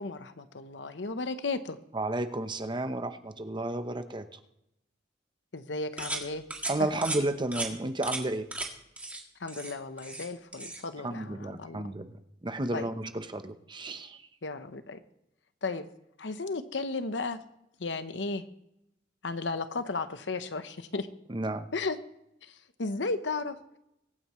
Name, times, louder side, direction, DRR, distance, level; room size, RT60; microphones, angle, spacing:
voice 1, 0.0-1.8 5.5-6.4 6.8-6.9 9.4-11.9 12.7-12.9 14.4-15.0 15.6-15.9 16.2-17.4 17.8-18.4 19.2-21.1 21.7-22.0 22.4-23.8, left 3 dB, 75° left, 11 dB, 0.9 m, -34 dB
voice 2, 1.9-4.2 6.7-8.5 11.0-12.1 12.4-14.2 21.3-21.6, right 2 dB, 25° right, 9 dB, 0.9 m, -32 dB
sound 1, 6.0-6.2 6.5-6.7 7.0-7.2 7.5-7.7 8.0-8.2 8.5-8.7 9.0-9.2 9.5-10.3 10.5-10.8, right 2 dB, 10° right, 1.8 m, -35 dB
23.0 x 9.2 x 3.1 m, 0.84 s
head